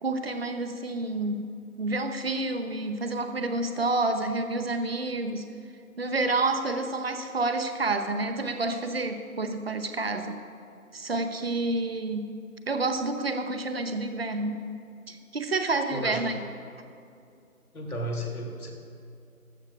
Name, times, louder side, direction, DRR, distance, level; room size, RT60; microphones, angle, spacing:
voice 1, 0.0-1.4 1.8-5.4 6.0-10.4 10.9-12.2 12.7-14.6 15.1-16.4, right 2 dB, 45° right, 7 dB, 0.8 m, -29 dB
voice 2, 15.9-16.2 17.7-18.7, equal, 80° left, -1 dB, 3.0 m, -33 dB
16.0 x 12.0 x 2.5 m, 2.5 s
figure-of-eight pair, 160°, 43 cm